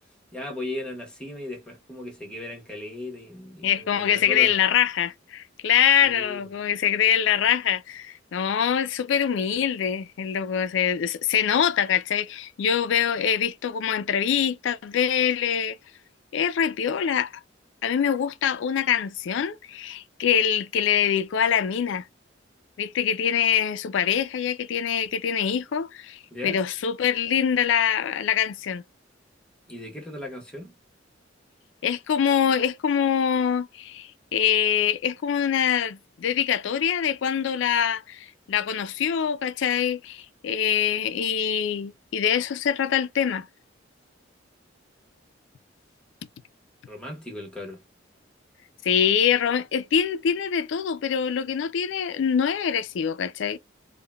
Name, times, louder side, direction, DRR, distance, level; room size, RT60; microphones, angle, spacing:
voice 1, 0.3-4.5 6.0-6.5 26.3-26.6 29.7-30.7 46.9-47.8, left 1 dB, 5° left, 0.9 m, -37 dB
voice 2, 3.6-15.8 16.3-17.3 17.8-22.0 22.8-28.8 31.8-43.5 48.8-53.6, left 8 dB, 70° left, 0.3 m, -24 dB
3.6 x 2.1 x 2.2 m
head